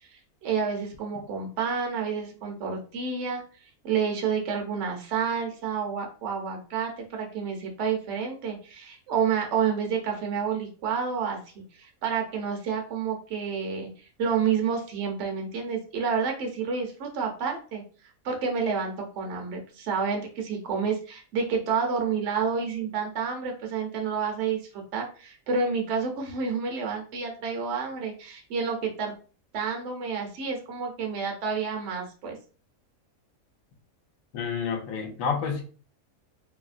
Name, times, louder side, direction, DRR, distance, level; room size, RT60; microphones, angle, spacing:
voice 1, 0.0-3.4 3.8-17.8 18.2-29.2 29.5-32.4, right 6 dB, 60° right, 0.9 m, -29 dB
voice 2, 34.3-35.6, left 6 dB, 75° left, 1.0 m, -29 dB
2.7 x 2.7 x 2.4 m
omnidirectional pair, 1.5 m